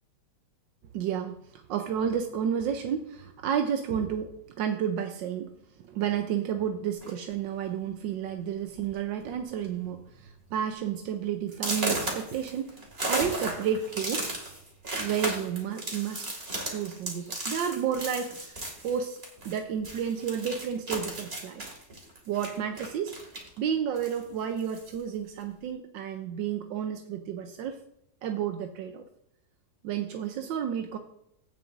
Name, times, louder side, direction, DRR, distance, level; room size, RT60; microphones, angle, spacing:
voice 1, 0.9-5.5 5.8-12.8 13.1-14.3 15.0-21.6 22.3-23.1 23.6-27.8 28.2-29.0 29.8-31.0, right 8 dB, 85° right, 5 dB, 1.4 m, -31 dB
sound 1, 7.0-7.3 8.1-8.2 8.6-8.9 9.2-9.7 10.1-10.2 10.7-10.8 11.5-19.6 19.8-23.6 23.9-25.0, right 2 dB, 35° right, 2.5 m, -35 dB
16.5 x 7.0 x 2.6 m, 0.78 s
omnidirectional pair, 2.0 m